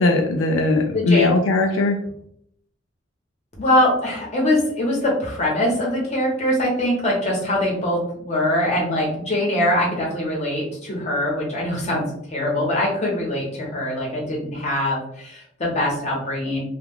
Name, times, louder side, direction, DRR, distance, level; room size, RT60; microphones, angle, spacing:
voice 1, 0.0-2.0, left 3 dB, 85° left, 3 dB, 0.3 m, -19 dB
voice 2, 0.9-1.3 3.6-12.0 12.3-16.6, left 1 dB, 35° left, -3 dB, 0.9 m, -22 dB
2.3 x 2.2 x 3.4 m, 0.70 s
head